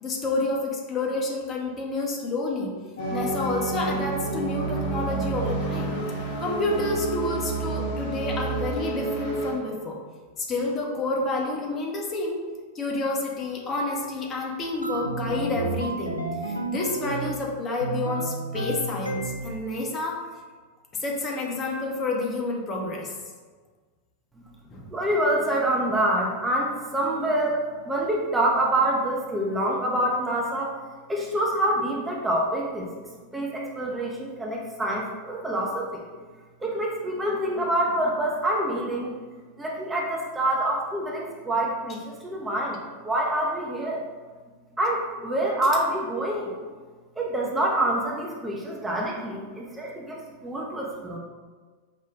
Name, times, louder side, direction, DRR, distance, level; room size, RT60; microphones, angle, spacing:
voice 1, 0.0-2.7 3.1-6.0 6.4-10.0 10.4-12.4 12.7-20.2 21.0-23.2 24.7-24.9, left 2 dB, 25° left, -1 dB, 0.7 m, -29 dB
sound 1, 3.0-9.5, right 3 dB, 55° left, 1.1 m, -29 dB
sound 2, 14.8-17.4 17.8-19.7, right 2 dB, 85° right, 0.3 m, -31 dB
voice 2, 24.9-30.8 31.1-36.0 36.6-42.8 43.0-44.0 44.8-46.5 47.2-51.2, right 1 dB, 10° right, -2 dB, 0.5 m, -26 dB
4.9 x 2.2 x 3.5 m, 1.5 s
figure-of-eight pair, 90°, 0 cm